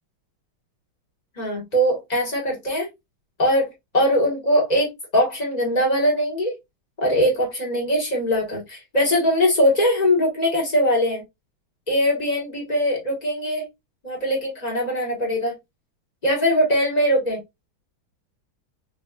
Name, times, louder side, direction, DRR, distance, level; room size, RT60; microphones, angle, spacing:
voice 1, 1.4-2.9 3.4-6.5 7.0-11.2 11.9-13.7 14.0-15.5 16.2-17.4, equal, 20° left, 1.3 m, -21 dB
4.1 x 2.5 x 2.4 m
omnidirectional pair, 2.3 m